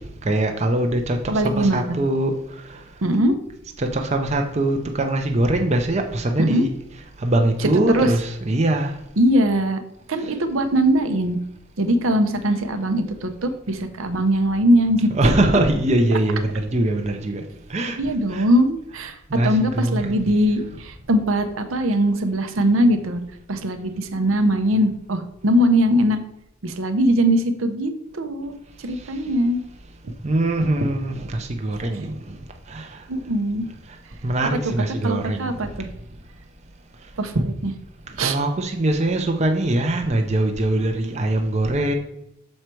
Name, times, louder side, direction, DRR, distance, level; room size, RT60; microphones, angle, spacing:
voice 1, 0.2-2.3 3.8-6.7 7.2-8.9 15.1-17.4 17.7-18.0 18.3-18.5 19.3-20.1 30.2-32.2 32.7-32.9 34.2-35.5 38.2-41.9, right 1 dB, 30° right, 4 dB, 0.6 m, -22 dB
voice 2, 1.3-2.0 3.0-3.3 6.4-6.6 7.6-8.1 9.2-9.8 10.1-11.4 11.8-15.3 18.0-23.2 23.5-26.2 26.6-28.5 28.8-29.6 30.0-30.1 33.1-33.7 34.4-34.7 35.0-35.9 37.2-37.7 38.2-38.4, equal, 75° right, 8 dB, 0.7 m, -21 dB
6.4 x 4.6 x 4.5 m, 0.83 s
head